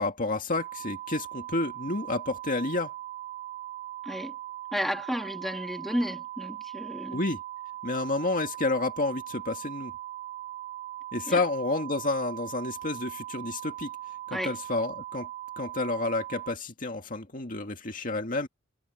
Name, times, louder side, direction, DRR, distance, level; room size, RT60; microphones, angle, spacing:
voice 1, 0.0-2.9 7.1-7.4 7.8-9.9 11.1-13.9 14.3-15.3 15.6-18.5, left 2 dB, 40° left, 2.0 m, -30 dB
sound 1, 0.5-16.5, right 14 dB, 35° right, 2.9 m, -40 dB
voice 2, 4.0-4.4 4.7-7.2 11.3-11.4 14.3-14.5, equal, ahead, 3.3 m, -32 dB
head